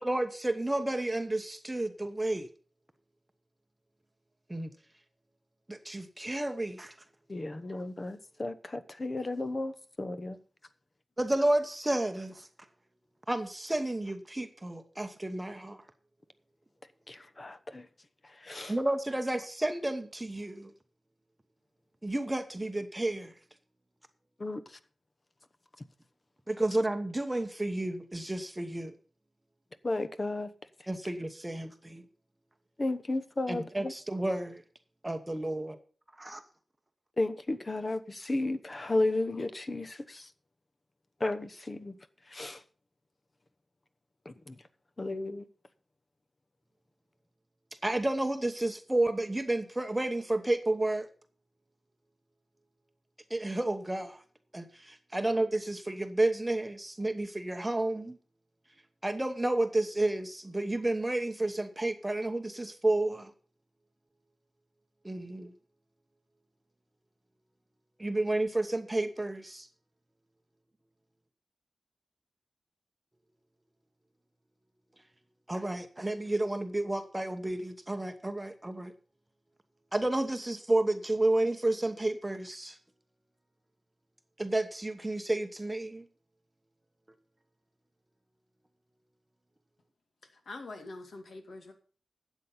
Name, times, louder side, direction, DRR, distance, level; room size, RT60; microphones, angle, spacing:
voice 1, 0.0-2.5 4.5-4.7 5.7-6.9 11.2-12.5 13.3-15.8 18.7-20.7 22.0-23.3 26.5-28.9 30.9-32.0 33.5-34.6 35.0-35.8 36.2-36.4 47.8-51.1 53.3-54.2 54.5-58.2 59.0-63.3 65.0-65.5 68.0-69.7 75.5-78.9 79.9-82.8 84.4-86.0, right 1 dB, 15° right, 1.0 m, -31 dB
voice 2, 7.3-10.4 17.1-17.9 18.4-18.7 24.4-24.6 29.8-30.5 32.8-33.9 37.2-40.3 41.2-42.0 42.3-42.6 44.2-44.6 45.0-45.4, left 2 dB, 35° left, 1.0 m, -33 dB
voice 3, 90.3-91.7, left 2 dB, 70° left, 2.3 m, -44 dB
12.5 x 8.2 x 5.5 m
wide cardioid pair, 120°, 0 cm